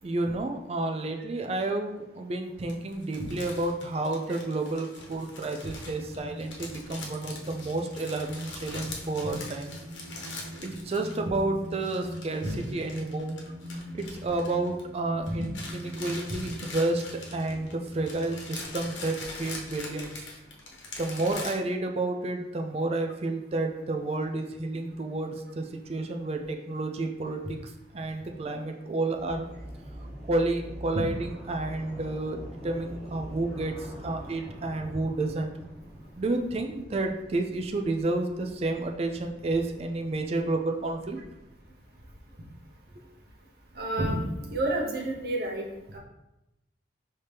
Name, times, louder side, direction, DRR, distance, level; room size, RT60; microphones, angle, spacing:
voice 1, 0.0-9.8 10.6-12.5 12.7-13.4 13.9-17.0 17.3-20.2 21.0-29.5 30.3-35.5 36.2-41.2, right 2 dB, 30° right, 4 dB, 0.4 m, -30 dB
sound 1, 2.7-11.4 11.6-15.0 15.3-21.6, left 3 dB, 80° left, 0.9 m, -43 dB
sound 2, 5.9-18.6, equal, 85° right, 0.5 m, -41 dB
sound 3, 29.1-44.0, equal, ahead, 0.9 m, -45 dB
voice 2, 43.7-46.0, right 1 dB, 55° right, -2 dB, 0.9 m, -30 dB
4.9 x 2.8 x 3.4 m, 0.93 s
head